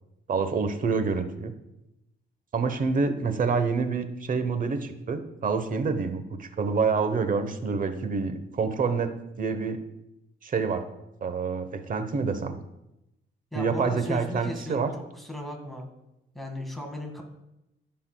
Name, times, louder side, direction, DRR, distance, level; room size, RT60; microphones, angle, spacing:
voice 1, 0.3-1.5 2.5-9.8 10.4-10.8 11.2-12.5 13.5-14.9, right 5 dB, 45° right, 8 dB, 1.0 m, -27 dB
voice 2, 13.5-15.9 16.3-17.2, left 1 dB, ahead, 1 dB, 1.8 m, -36 dB
14.5 x 5.7 x 2.3 m, 0.89 s
cardioid pair, 90°, 20 cm